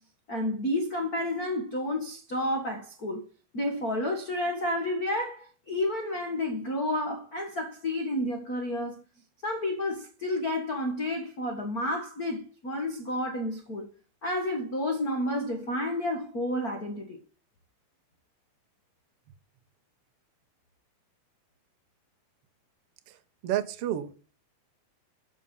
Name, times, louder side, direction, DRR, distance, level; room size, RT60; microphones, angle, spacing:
voice 1, 0.3-3.2 3.5-9.0 9.4-13.9 14.2-17.2, left 1 dB, 65° left, 0.9 m, -30 dB
voice 2, 23.4-24.1, right 12 dB, 80° right, 1.3 m, -30 dB
13.0 x 5.2 x 5.6 m
omnidirectional pair, 4.4 m